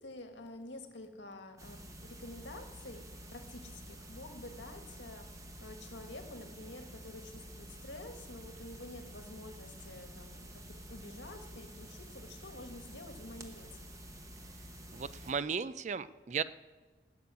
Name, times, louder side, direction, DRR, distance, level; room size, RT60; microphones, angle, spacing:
voice 1, 0.0-13.9, left 2 dB, 85° left, 5 dB, 1.7 m, -49 dB
sound 1, 1.6-15.3, right 1 dB, 20° right, 1.0 m, -50 dB
voice 2, 14.9-16.4, right 6 dB, 40° right, 15 dB, 0.4 m, -35 dB
17.0 x 6.8 x 9.7 m, 1.3 s
head